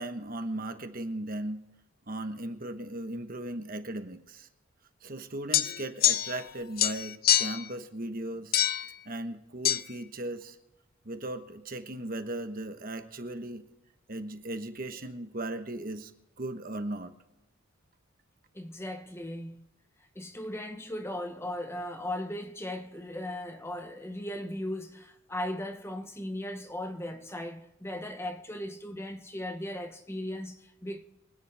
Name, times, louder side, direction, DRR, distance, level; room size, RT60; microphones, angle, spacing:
voice 1, 0.0-1.6 2.1-4.5 5.0-8.6 9.0-10.6 11.0-13.7 14.1-16.1 16.4-17.1, right 1 dB, 40° right, 1.2 m, -37 dB
sound 1, 5.5-6.5 6.8-7.7 8.5-8.9 9.6-9.8, left 12 dB, 45° left, 0.5 m, -25 dB
voice 2, 18.5-19.7 20.1-31.0, left 1 dB, 10° left, 0.9 m, -37 dB
25.5 x 10.0 x 3.5 m
head